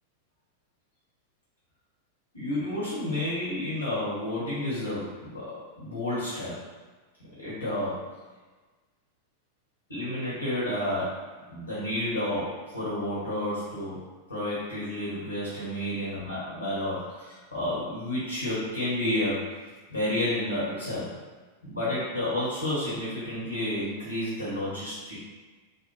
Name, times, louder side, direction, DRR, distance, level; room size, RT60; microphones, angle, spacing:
voice 1, 2.3-6.6 7.4-8.1 9.9-11.2 11.5-19.5 19.9-21.1 21.6-25.2, left 1 dB, 85° left, -9 dB, 1.0 m, -31 dB
2.7 x 2.1 x 3.0 m, 1.3 s
figure-of-eight pair, 90°, 0 cm